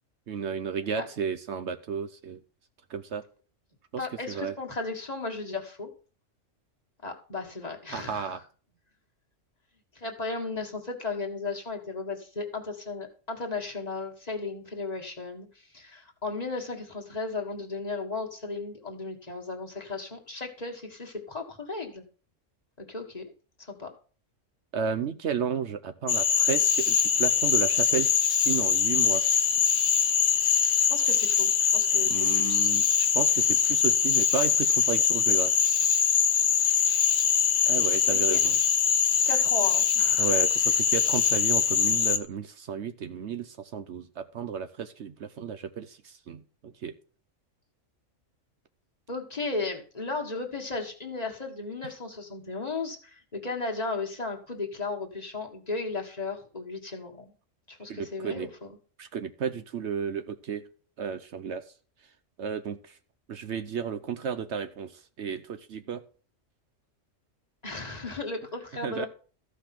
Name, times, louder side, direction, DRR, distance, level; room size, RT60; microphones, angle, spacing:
voice 1, 0.3-2.4 2.9-3.2 4.3-4.5 7.9-8.4 24.7-29.2 32.1-35.5 37.7-38.6 40.2-46.9 57.9-58.5 59.0-60.6 61.0-61.6 62.4-63.0 63.3-64.9 65.2-66.0 68.8-69.1, right 7 dB, 65° right, 10 dB, 1.0 m, -33 dB
voice 2, 4.0-5.9 7.0-8.4 10.0-22.0 22.8-23.3 23.7-23.9 30.8-32.7 38.1-38.4 39.3-40.3 49.1-57.3 57.7-58.8 67.6-69.1, left 3 dB, 30° left, 1 dB, 1.8 m, -35 dB
Cricket / Frog, 26.1-42.2, left 7 dB, 80° left, 1.3 m, -23 dB
14.0 x 5.4 x 5.9 m, 0.41 s
omnidirectional pair, 1.3 m